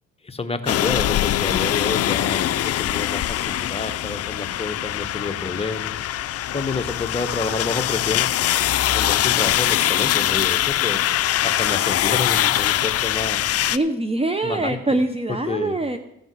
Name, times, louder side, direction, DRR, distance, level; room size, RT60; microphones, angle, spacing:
voice 1, 0.2-6.0 6.5-8.3 8.9-11.0 11.4-13.4 14.4-14.8 15.5-15.8, left 3 dB, 20° left, 7 dB, 1.0 m, -29 dB
sound 1, 0.7-13.8, left 13 dB, 55° left, 0.4 m, -22 dB
voice 2, 13.6-16.0, right 2 dB, 20° right, 8 dB, 0.7 m, -24 dB
15.0 x 5.3 x 6.2 m, 0.83 s
cardioid pair, 90°, 30 cm